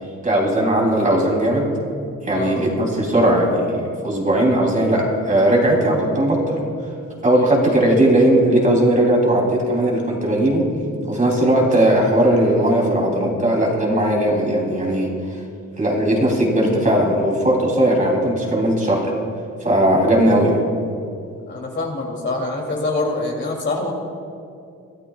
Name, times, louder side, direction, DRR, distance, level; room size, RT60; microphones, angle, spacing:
voice 1, 0.2-1.7 2.2-3.8 4.0-6.6 7.2-10.6 11.1-15.1 15.8-19.1 19.6-20.6, right 1 dB, 25° right, -1 dB, 3.3 m, -18 dB
voice 2, 2.3-2.7 7.7-7.8 21.5-23.9, left 2 dB, 40° left, 0 dB, 3.0 m, -25 dB
24.5 x 13.0 x 2.4 m, 2.5 s
cardioid pair, 90°, 30 cm